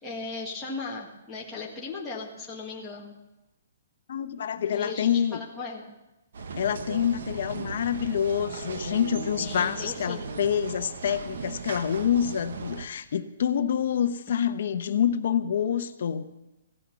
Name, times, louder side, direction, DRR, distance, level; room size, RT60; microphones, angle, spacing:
voice 1, 0.0-3.2 4.7-5.9 9.4-10.3, left 4 dB, 5° left, -6 dB, 1.9 m, -37 dB
voice 2, 4.1-5.4 6.6-16.2, left 8 dB, 55° left, 10 dB, 0.9 m, -27 dB
sound 1, 6.3-12.9, right 4 dB, 70° right, 1.3 m, -37 dB
16.5 x 10.0 x 6.9 m, 0.98 s
hypercardioid pair, 165°, 0 cm